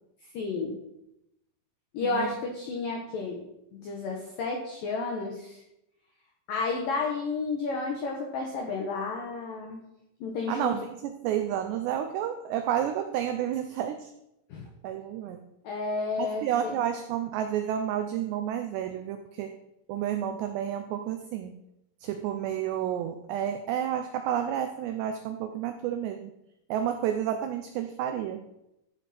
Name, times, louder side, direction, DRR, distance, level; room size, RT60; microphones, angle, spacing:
voice 1, 0.3-0.8 1.9-3.4 3.7-5.6 6.5-9.8 10.2-10.9 14.5-14.7 15.6-16.8, left 3 dB, 80° left, 0 dB, 2.0 m, -31 dB
voice 2, 10.5-14.1 14.8-15.4 16.2-19.5 19.9-21.5 22.0-26.3 26.7-28.4, right 10 dB, 85° right, 7 dB, 2.4 m, -30 dB
13.5 x 8.1 x 4.3 m, 0.87 s
omnidirectional pair, 5.8 m